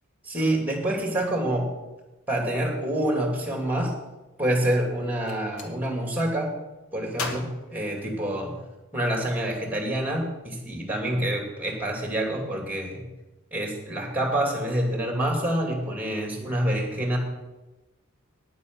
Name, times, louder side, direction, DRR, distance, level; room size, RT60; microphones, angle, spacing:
voice 1, 0.2-1.7 2.3-3.9 4.4-6.5 6.9-8.5 8.9-13.0 13.5-17.2, right 1 dB, 10° right, 1 dB, 2.8 m, -27 dB
Gunshot gunfire, 5.2-5.7 7.1-8.6, left 3 dB, 80° left, 1.7 m, -37 dB
9.8 x 9.6 x 6.3 m, 1.1 s
head